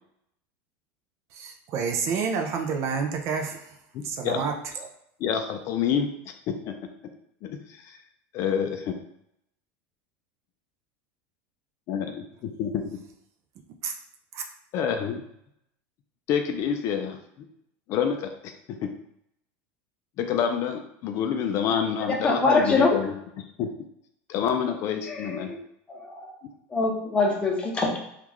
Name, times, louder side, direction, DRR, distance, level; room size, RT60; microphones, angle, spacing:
voice 1, 1.3-3.6 4.0-4.9 13.8-13.9 14.3-14.4, right 5 dB, 45° right, 0.4 m, -29 dB
voice 2, 3.9-4.4 5.2-6.1 6.5-6.8 7.4-8.0 8.3-9.0 11.9-12.8 14.7-15.2 16.3-17.5 17.9-18.5 18.8-18.9 20.2-23.7 24.3-25.5, left 7 dB, 45° left, 0.4 m, -28 dB
voice 3, 22.2-22.9 25.1-25.6 25.9-26.3 26.7-28.0, left 3 dB, 15° left, 0.7 m, -24 dB
3.6 x 2.4 x 3.0 m
supercardioid pair, 140°, 7 cm